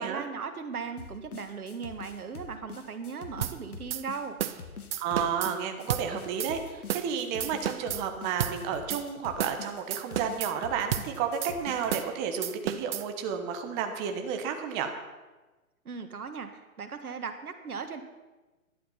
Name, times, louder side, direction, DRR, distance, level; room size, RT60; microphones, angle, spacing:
voice 1, 0.0-4.4 15.9-18.0, right 5 dB, 85° right, 7 dB, 1.8 m, -38 dB
sound 1, 1.0-12.0, left 5 dB, 90° left, 1.9 m, -45 dB
sound 2, 3.4-3.6 3.9-4.0 4.4-4.6 4.9-5.5 5.9-6.1 6.4-6.5 6.9-7.1 7.4-8.0 8.4-8.6 8.9-9.0 9.4-9.6 9.9-10.5 10.9-11.1 11.4-11.5 11.9-12.1 12.4-13.0, right 11 dB, 45° right, 0.7 m, -32 dB
voice 2, 5.0-14.9, right 7 dB, 20° right, 6 dB, 1.1 m, -32 dB
12.0 x 11.5 x 5.7 m, 1.2 s
hypercardioid pair, 145°, 43 cm